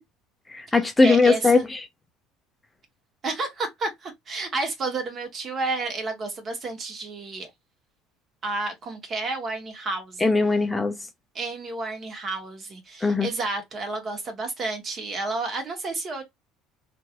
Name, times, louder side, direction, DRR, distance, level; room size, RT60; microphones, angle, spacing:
voice 1, 0.5-1.9 10.2-10.9 13.0-13.3, left 3 dB, 15° left, 0.6 m, -20 dB
voice 2, 1.0-1.6 3.2-7.5 8.4-10.2 11.3-16.2, right 3 dB, 40° right, 1.3 m, -31 dB
2.9 x 2.5 x 2.9 m
supercardioid pair, 90°, 0 cm